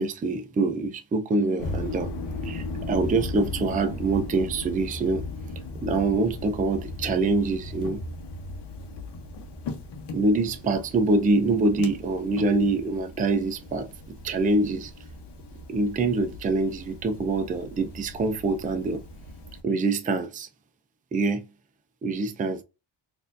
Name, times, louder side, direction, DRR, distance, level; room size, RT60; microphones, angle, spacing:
voice 1, 0.0-2.1 2.4-5.2 5.8-8.0 10.1-13.9 14.2-14.9 15.7-19.0 19.6-20.5 21.1-21.4 22.0-22.6, right 3 dB, 20° right, 0.4 m, -25 dB
sound 1, 1.6-19.6, left 2 dB, 60° left, 0.9 m, -37 dB
4.2 x 2.6 x 2.6 m
cardioid pair, 165°, 46 cm